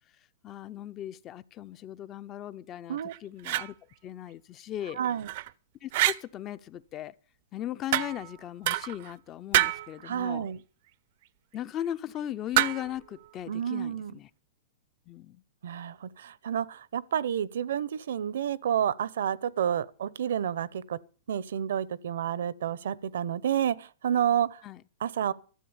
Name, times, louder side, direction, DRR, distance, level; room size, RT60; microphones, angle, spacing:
voice 1, 0.4-3.7 4.0-5.0 5.8-7.1 7.5-10.5 11.5-14.3 15.1-15.4 24.6-24.8, left 11 dB, 25° left, 0.6 m, -38 dB
sound 1, 3.0-3.7 5.0-5.5 5.9-6.2 7.9-8.3 8.7-9.1 9.5-9.9 12.5-13.0, right 17 dB, 50° right, 0.6 m, -27 dB
voice 2, 5.0-5.3 10.0-10.6 13.5-14.1 15.6-21.0 21.3-24.6 25.0-25.3, right 9 dB, 80° right, 0.8 m, -30 dB
13.0 x 7.7 x 8.8 m
hypercardioid pair, 155°, 0 cm